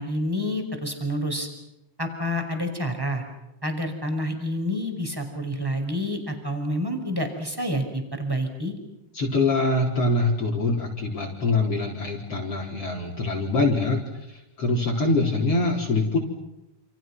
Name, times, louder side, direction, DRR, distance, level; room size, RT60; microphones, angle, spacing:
voice 1, 0.0-1.5 2.0-3.2 3.6-8.7, equal, 5° right, 6 dB, 5.5 m, -28 dB
voice 2, 9.1-16.2, left 2 dB, 45° left, -1 dB, 5.1 m, -24 dB
29.5 x 29.5 x 6.2 m, 0.93 s
omnidirectional pair, 3.7 m